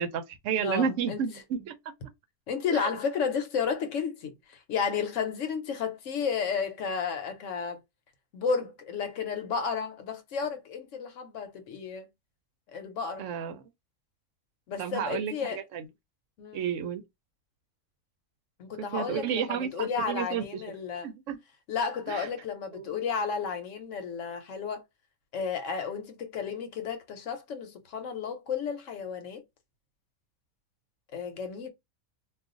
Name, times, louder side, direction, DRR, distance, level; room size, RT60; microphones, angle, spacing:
voice 1, 0.0-1.7 2.7-2.9 13.2-13.6 14.8-15.8 16.5-17.0 18.9-20.6 21.0-21.4 22.1-22.3 22.7-22.9, right 7 dB, 65° right, 0.8 m, -31 dB
voice 2, 0.6-1.2 2.5-7.8 8.3-12.1 12.7-13.3 14.7-15.6 16.4-16.6 18.6-21.1 21.7-24.8 25.3-29.4 31.1-31.7, left 6 dB, 65° left, 1.0 m, -32 dB
2.4 x 2.4 x 3.7 m
omnidirectional pair, 1.5 m